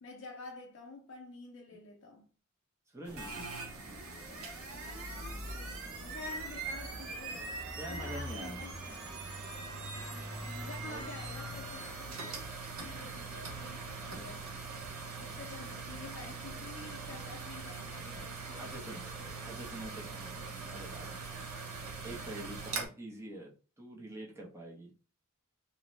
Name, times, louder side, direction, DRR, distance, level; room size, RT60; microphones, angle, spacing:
voice 1, 0.0-2.3 4.8-8.9 9.9-12.2 12.8-14.4 15.2-19.5, left 3 dB, 55° left, 0.4 m, -49 dB
voice 2, 2.9-3.5 7.8-8.7 10.8-11.1 18.6-19.1 19.4-21.2 22.0-24.9, right 1 dB, 10° right, 0.5 m, -45 dB
sound 1, 3.1-22.9, right 3 dB, 75° right, 0.6 m, -42 dB
2.5 x 2.0 x 3.0 m
head